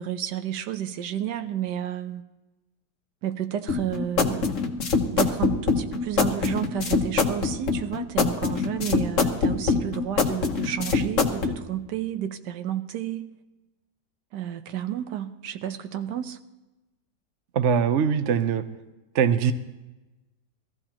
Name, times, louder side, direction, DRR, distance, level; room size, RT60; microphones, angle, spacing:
voice 1, 0.0-2.2 3.2-4.7 5.1-13.4 14.3-16.4, right 10 dB, 85° right, 9 dB, 1.4 m, -31 dB
sound 1, 3.7-11.5, left 4 dB, 50° left, 1.3 m, -24 dB
voice 2, 17.6-18.6 19.1-19.5, right 7 dB, 55° right, 9 dB, 0.9 m, -22 dB
20.5 x 14.5 x 2.9 m, 1.1 s
omnidirectional pair, 1.8 m